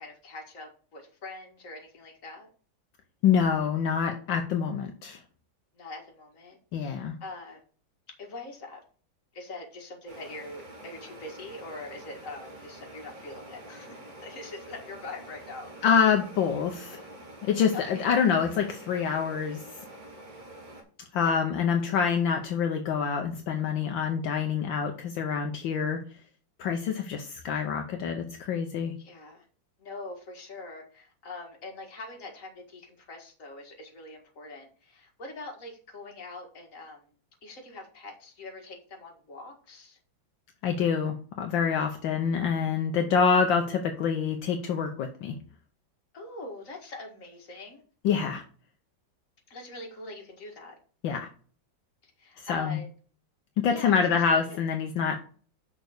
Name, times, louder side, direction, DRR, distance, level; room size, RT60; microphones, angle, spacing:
voice 1, 0.0-2.5 5.7-7.6 8.2-8.8 9.3-15.9 17.7-18.1 29.0-29.5 29.8-37.1 37.4-40.0 46.1-47.8 49.5-50.8 52.0-52.9 53.7-54.6, left 2 dB, 40° left, 1 dB, 2.1 m, -43 dB
voice 2, 3.2-5.2 6.7-7.1 15.8-17.0 17.4-19.6 21.1-26.0 26.6-28.9 40.6-45.4 48.0-48.4 51.0-51.3 52.4-52.8 53.6-55.2, left 6 dB, 75° left, 4 dB, 1.5 m, -26 dB
sound 1, 10.1-20.8, right 1 dB, 50° right, 2.5 m, -47 dB
6.3 x 4.7 x 6.4 m, 0.42 s
omnidirectional pair, 2.1 m